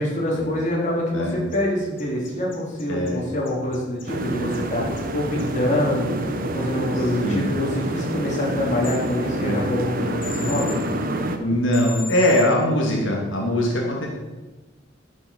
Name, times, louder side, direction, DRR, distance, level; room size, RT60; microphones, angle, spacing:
voice 1, 0.0-10.8, left 1 dB, 40° left, -3 dB, 3.7 m, -25 dB
sound 1, 1.5-1.6 2.0-3.1 3.5-4.0 4.5-4.6 5.0-5.1 5.4-5.5 8.8-9.0 10.2-10.8 11.7-12.4, left 6 dB, 75° left, 2.4 m, -35 dB
voice 2, 2.9-3.2 7.2-7.5 9.4-9.6 11.4-14.1, left 1 dB, 90° left, -1 dB, 2.8 m, -21 dB
sound 2, 4.1-11.4, right 1 dB, 50° right, 1.3 m, -28 dB
12.0 x 7.3 x 7.2 m, 1.2 s
head